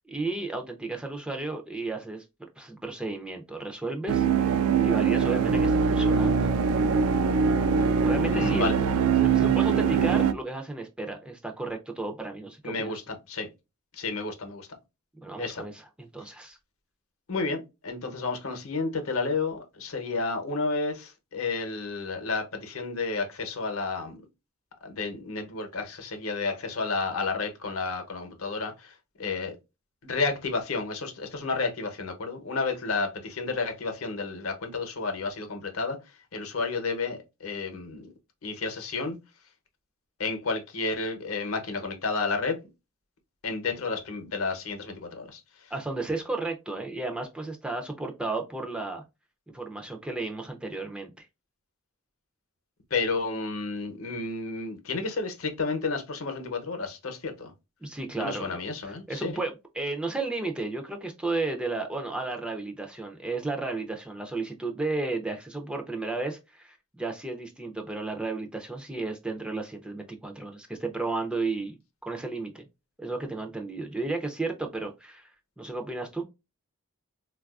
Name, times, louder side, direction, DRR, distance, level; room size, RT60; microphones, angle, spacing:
voice 1, 0.0-6.5 8.1-8.7 9.2-13.0 15.2-15.8 16.1-16.6 45.7-49.0 49.5-51.3 57.8-58.6 59.1-72.6 73.0-75.3 75.6-76.2, right 3 dB, 5° right, 0.3 m, -33 dB
sound 1, 4.1-10.3, right 6 dB, 85° right, 0.4 m, -23 dB
voice 2, 8.3-9.0 12.6-13.5 13.9-14.7 15.4-15.6 17.3-24.2 24.8-29.6 30.0-38.1 38.4-39.2 40.2-42.6 43.4-45.7 52.9-57.5 58.1-59.4, left 4 dB, 70° left, 0.7 m, -31 dB
3.8 x 2.3 x 2.3 m
head